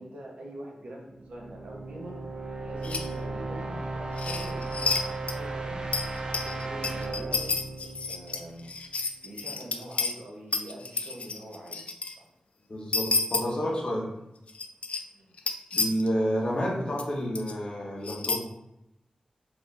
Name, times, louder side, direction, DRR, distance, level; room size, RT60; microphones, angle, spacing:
voice 1, 0.0-2.2 2.6-5.8 6.2-7.5 8.1-8.7 9.2-11.9 12.2-12.3 13.5-13.8 15.1-15.3, right 1 dB, 85° right, -2 dB, 1.1 m, -44 dB
sound 1, 1.2-9.0, right 3 dB, 40° right, 0.6 m, -36 dB
sound 2, 2.8-3.1 4.2-5.0 5.3-5.4 5.9-10.1 10.5-12.1 12.9-13.4 14.5-15.0 15.4-16.1 17.0-17.1 17.4-17.5 18.0-18.4, left 4 dB, 65° left, 0.4 m, -30 dB
voice 2, 12.7-14.0 15.7-18.4, equal, 45° left, -4 dB, 1.3 m, -29 dB
3.9 x 3.5 x 3.5 m, 0.89 s
wide cardioid pair, 105°, 2 cm